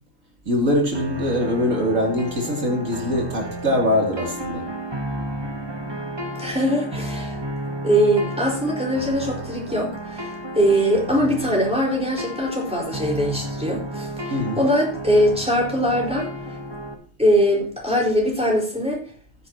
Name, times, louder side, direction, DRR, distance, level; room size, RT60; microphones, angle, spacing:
voice 1, 0.5-4.6 14.3-14.6, left 1 dB, 75° right, 1 dB, 3.5 m, -22 dB
sound 1, 0.9-16.9, right 1 dB, 20° right, 1.4 m, -32 dB
voice 2, 6.4-7.4 7.8-16.3 17.2-19.0, equal, 5° right, -2 dB, 5.0 m, -21 dB
15.0 x 9.6 x 3.0 m, 0.43 s
omnidirectional pair, 1.4 m